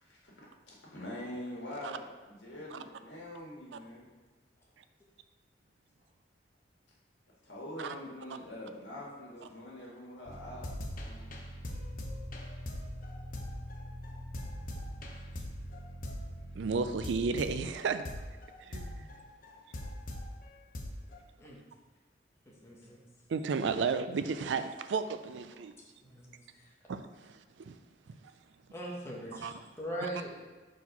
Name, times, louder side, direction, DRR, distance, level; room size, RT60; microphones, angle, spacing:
voice 1, 0.0-4.0 7.4-10.7 11.0-11.2, left 1 dB, 80° left, -4 dB, 1.9 m, -44 dB
sound 1, 10.3-20.3 20.8-21.2, equal, 50° left, 0.7 m, -41 dB
voice 2, 16.5-18.0 18.6-19.1 23.3-25.7 26.9-27.0 27.3-27.7 29.3-29.5, right 5 dB, 85° right, 10 dB, 0.4 m, -33 dB
voice 3, 22.6-23.0 26.1-26.4 28.7-30.5, right 1 dB, 15° left, -4 dB, 1.2 m, -40 dB
4.7 x 4.2 x 5.4 m, 1.3 s
head